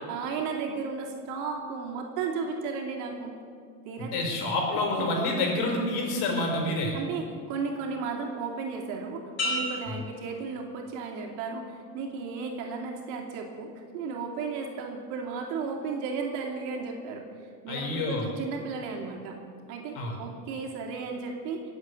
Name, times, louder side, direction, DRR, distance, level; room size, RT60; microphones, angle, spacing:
voice 1, 0.1-3.3 3.8-4.5 5.0-5.2 6.9-19.4 19.7-21.6, right 5 dB, 75° right, 1 dB, 2.9 m, -34 dB
voice 2, 4.1-6.9 9.9-10.0 17.7-18.3 19.9-20.2, left 2 dB, 60° left, 1 dB, 5.0 m, -28 dB
sound 1, 9.4-11.2 11.7-12.1, left 1 dB, 40° left, 5.0 m, -34 dB
21.5 x 8.1 x 8.3 m, 2.2 s
supercardioid pair, 125°, 41 cm